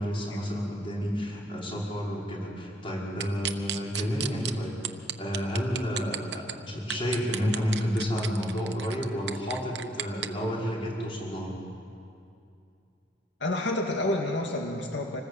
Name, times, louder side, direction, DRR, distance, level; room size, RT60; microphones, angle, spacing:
voice 1, 0.0-4.8 5.2-11.5, equal, 30° left, -3 dB, 5.6 m, -30 dB
sound 1, 3.2-4.5 4.8-6.5 6.9-10.3, right 10 dB, 70° right, 1.0 m, -33 dB
voice 2, 13.4-15.2, left 1 dB, 85° left, 2 dB, 2.1 m, -29 dB
26.0 x 19.5 x 8.3 m, 2.5 s
head